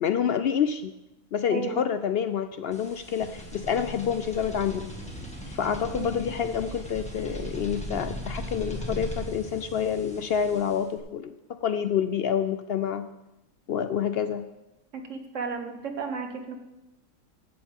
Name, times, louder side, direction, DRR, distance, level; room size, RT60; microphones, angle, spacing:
voice 1, 0.0-0.9 1.3-4.9 5.5-11.3 11.6-13.1 13.7-14.4, left 8 dB, 65° left, 11 dB, 0.6 m, -28 dB
voice 2, 1.5-1.9 5.9-6.1 14.9-16.6, right 5 dB, 60° right, 5 dB, 1.6 m, -33 dB
sound 1, 2.7-11.0, right 1 dB, 5° left, 1.8 m, -38 dB
15.5 x 11.0 x 3.6 m, 0.94 s
omnidirectional pair, 1.5 m